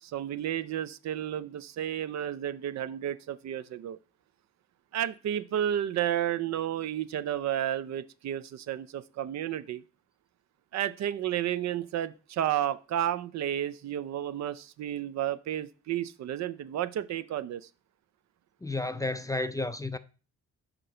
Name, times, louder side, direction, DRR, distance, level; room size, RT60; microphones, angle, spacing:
voice 1, 0.0-4.0 4.9-9.8 10.7-17.6, right 11 dB, 65° right, 0.5 m, -32 dB
voice 2, 18.6-20.0, left 2 dB, 10° left, 0.4 m, -32 dB
6.0 x 3.8 x 5.5 m
cardioid pair, 90°, 30 cm